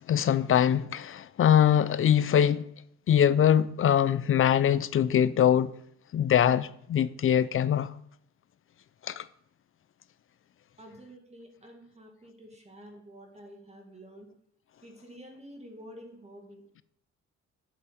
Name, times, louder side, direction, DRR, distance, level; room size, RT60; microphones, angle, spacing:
voice 1, 0.0-2.7 3.1-5.7 6.1-7.9 9.0-9.3, left 9 dB, 45° left, 0.5 m, -23 dB
voice 2, 10.8-14.3 14.8-16.6, equal, 20° right, 2.1 m, -49 dB
7.0 x 7.0 x 5.1 m
cardioid pair, 90°, 30 cm